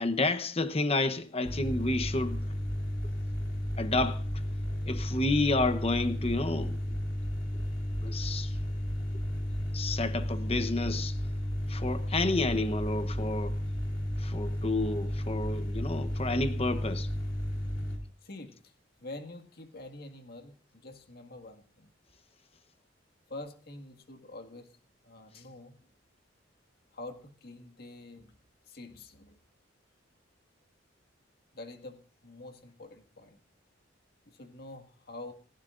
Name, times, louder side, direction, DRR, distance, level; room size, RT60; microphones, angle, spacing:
voice 1, 0.0-2.4 3.8-4.2 4.9-6.8 8.0-8.5 9.7-11.1 11.7-13.6 14.2-17.1, left 2 dB, 30° left, 1.0 m, -30 dB
sound 1, 1.4-18.0, equal, 90° left, 4.4 m, -33 dB
voice 2, 18.2-18.7 19.0-21.9 23.3-24.7 25.0-25.8 26.9-28.4 28.7-29.4 31.5-33.4 34.3-35.3, left 2 dB, 55° left, 1.9 m, -46 dB
27.5 x 11.5 x 2.6 m
head